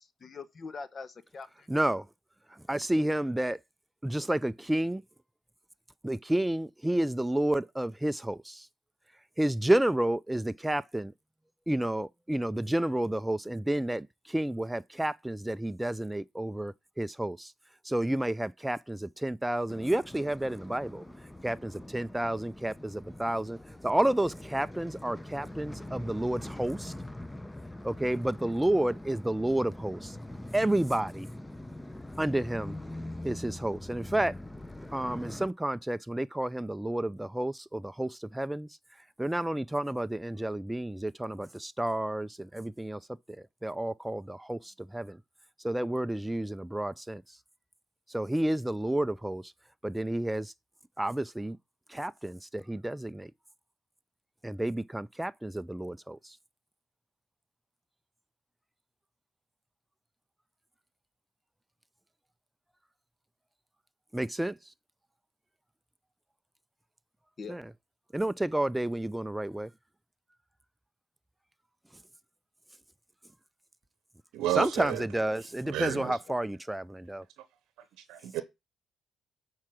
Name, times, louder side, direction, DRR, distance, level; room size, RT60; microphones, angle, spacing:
voice 1, 0.0-1.7 67.4-67.6 75.9-76.1, left 4 dB, 45° left, 1.1 m, -43 dB
voice 2, 1.7-2.1 2.5-3.6 4.0-5.0 6.0-8.7 9.4-11.1 11.7-17.5 17.8-21.0 21.4-23.6 23.8-26.9 27.8-30.2 30.5-31.3 32.2-32.8 33.2-34.4 34.9-38.8 39.2-45.2 45.6-47.4 48.1-49.5 49.8-50.5 51.0-51.6 51.9-53.3 54.4-56.4 64.1-64.7 67.5-67.7 68.1-69.7 74.5-77.3, right 1 dB, 10° right, 0.4 m, -30 dB
sound 1, 19.7-35.5, left 1 dB, 10° left, 0.8 m, -43 dB
voice 3, 74.3-75.0 75.7-76.2 78.1-78.4, right 13 dB, 80° right, 0.8 m, -31 dB
7.3 x 4.8 x 6.0 m
hypercardioid pair, 50°, 0 cm